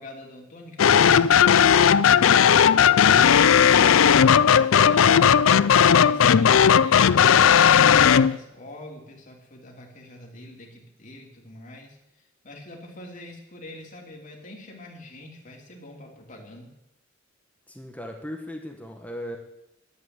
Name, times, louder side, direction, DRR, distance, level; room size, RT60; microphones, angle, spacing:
voice 1, 0.0-5.2 5.8-16.7, left 1 dB, 40° left, 0 dB, 3.0 m, -44 dB
sound 1, 0.8-8.4, left 8 dB, 80° left, 0.4 m, -16 dB
voice 2, 17.7-19.4, equal, 5° left, 2 dB, 1.4 m, -37 dB
11.5 x 8.2 x 9.5 m, 0.86 s
head